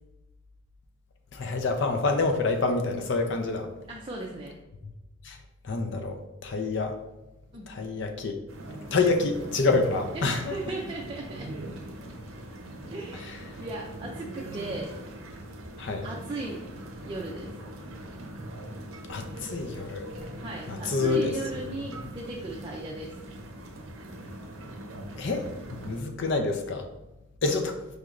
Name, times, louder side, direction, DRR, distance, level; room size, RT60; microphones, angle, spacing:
voice 1, 1.3-3.7 4.8-4.9 5.2-5.4 5.6-7.0 7.7-8.4 8.9-10.6 13.3-13.4 15.8-16.1 19.1-20.1 20.7-21.6 21.9-22.0 25.2-25.5 25.8-26.9 27.4-27.8, left 3 dB, 60° left, 5 dB, 0.5 m, -27 dB
voice 2, 3.9-4.6 7.5-7.7 10.1-11.5 12.9-14.9 16.0-16.6 17.0-17.5 20.4-23.2, right 2 dB, 25° right, -2 dB, 0.4 m, -37 dB
sound 1, 8.5-26.0, right 1 dB, 85° right, 0.7 m, -41 dB
4.9 x 3.1 x 2.4 m, 0.99 s
head